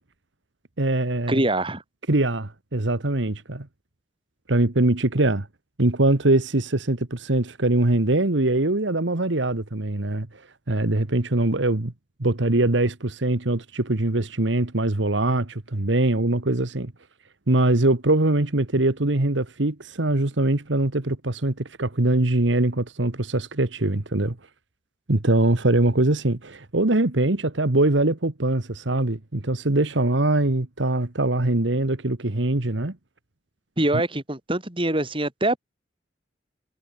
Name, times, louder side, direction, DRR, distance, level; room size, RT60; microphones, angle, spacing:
voice 1, 0.8-1.4 2.1-3.7 4.5-5.5 5.8-10.3 10.7-11.9 12.2-16.9 17.5-24.4 25.1-33.0, right 2 dB, 75° right, 1.6 m, -22 dB
voice 2, 1.3-1.8 33.8-35.6, right 1 dB, 30° right, 4.2 m, -24 dB
head